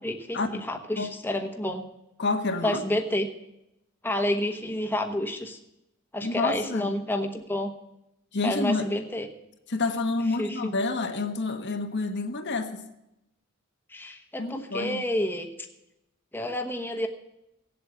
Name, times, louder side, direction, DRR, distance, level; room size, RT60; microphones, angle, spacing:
voice 1, 0.0-1.8 2.6-3.3 4.0-5.6 6.1-7.7 8.4-9.3 10.4-10.7 13.9-15.5 16.3-17.1, left 1 dB, 10° left, 1.0 m, -29 dB
voice 2, 2.2-2.8 6.2-6.9 8.3-8.9 9.7-12.8 14.4-15.0, left 3 dB, 55° left, 1.2 m, -28 dB
17.0 x 8.0 x 8.1 m
head